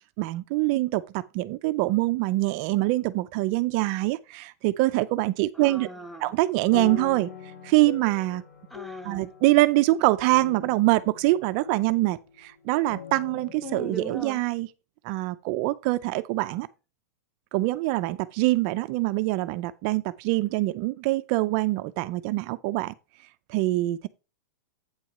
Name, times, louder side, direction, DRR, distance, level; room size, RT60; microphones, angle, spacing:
voice 1, 0.2-5.9 6.2-7.3 7.6-8.4 9.0-14.7 15.0-16.7 17.5-22.9 23.5-24.1, right 19 dB, 40° right, 0.5 m, -24 dB
voice 2, 5.5-6.3 8.7-9.3 13.6-14.4, left 1 dB, ahead, 1.0 m, -39 dB
sound 1, 6.2-12.2 12.9-14.0, left 8 dB, 80° left, 4.6 m, -42 dB
8.8 x 4.7 x 5.4 m
supercardioid pair, 155°, 9 cm